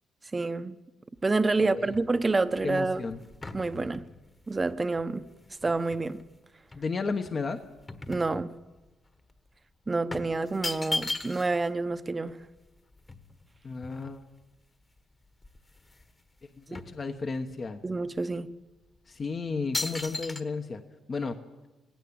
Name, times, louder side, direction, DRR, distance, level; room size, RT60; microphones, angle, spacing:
voice 1, 0.3-0.8 1.2-3.1 3.5-4.0 4.5-5.2 5.6-6.2 8.1-8.5 9.9-12.4 16.7-16.8 17.8-18.5, right 3 dB, 25° right, 0.9 m, -28 dB
sound 1, 1.2-6.3 6.7-8.9 9.2-9.4 10.1-11.7 12.0-12.1 12.3-14.4 15.0-15.1 15.3-16.1 16.4-17.6 18.2-18.3 19.0-19.2 19.7-20.4, left 2 dB, 25° left, 1.4 m, -38 dB
voice 2, 1.6-1.9 2.6-3.2 6.8-7.6 13.6-14.2 16.6-17.8 19.1-20.8 21.1-21.4, left 4 dB, 40° left, 1.1 m, -33 dB
18.5 x 16.5 x 8.7 m
cardioid pair, 90°, 0 cm